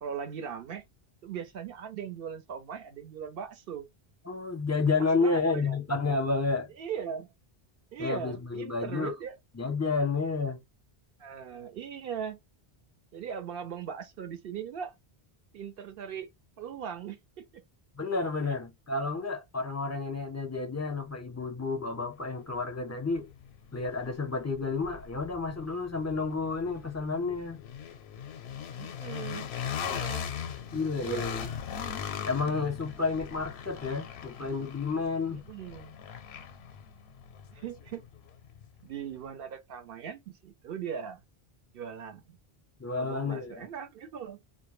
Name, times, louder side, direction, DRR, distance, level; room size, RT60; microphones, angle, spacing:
voice 1, 0.0-0.8 1.2-3.9 5.2-5.8 6.8-7.3 7.9-9.3 11.2-12.4 13.1-14.9 15.5-16.3 16.6-17.6 18.5-18.6 28.8-29.5 29.8-30.3 30.9-31.3 35.3-36.0 37.5-38.1 38.8-41.2 41.7-42.4 42.9-44.4, right 7 dB, 70° right, 0.8 m, -39 dB
voice 2, 4.3-6.7 8.0-9.1 9.6-10.6 18.0-23.3 23.7-27.6 30.7-31.5 32.2-35.4 42.8-43.7, left 4 dB, 20° left, 0.5 m, -30 dB
sound 1, 22.2-22.3 22.7-38.7, left 8 dB, 85° left, 0.8 m, -40 dB
2.1 x 2.1 x 3.0 m
omnidirectional pair, 1.0 m